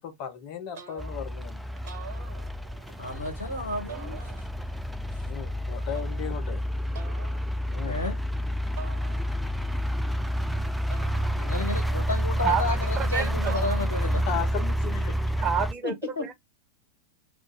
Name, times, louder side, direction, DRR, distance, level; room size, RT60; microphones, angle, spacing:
voice 1, 0.0-1.9 5.3-6.6 7.7-8.0 13.9-15.4, left 8 dB, 45° left, 1.0 m, -36 dB
sound 1, 0.7-1.4 1.8-2.9 3.9-4.8 5.9-6.5 6.9-7.5 8.8-9.6 10.9-11.9 13.5-14.2, right 6 dB, 50° right, 1.3 m, -45 dB
sound 2, 1.0-15.7, equal, ahead, 0.3 m, -29 dB
voice 2, 3.0-4.3 7.8-8.2 11.4-14.2 15.8-16.3, left 3 dB, 75° left, 1.0 m, -32 dB
voice 3, 12.4-13.5 15.4-16.3, right 7 dB, 25° right, 0.7 m, -29 dB
3.3 x 2.7 x 3.5 m
figure-of-eight pair, 90°, 0 cm